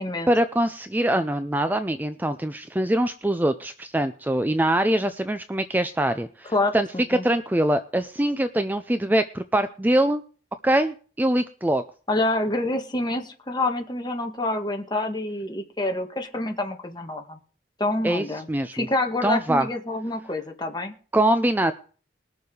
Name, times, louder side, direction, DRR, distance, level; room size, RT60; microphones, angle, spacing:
voice 1, 0.3-10.2 10.6-11.8 18.0-18.9 19.2-19.7 21.1-21.7, right 1 dB, 10° right, 10 dB, 0.5 m, -23 dB
voice 2, 6.5-7.2 12.1-17.4 17.8-18.5 18.7-20.9, left 2 dB, 25° left, 4 dB, 1.8 m, -27 dB
20.5 x 7.0 x 4.9 m, 0.40 s
head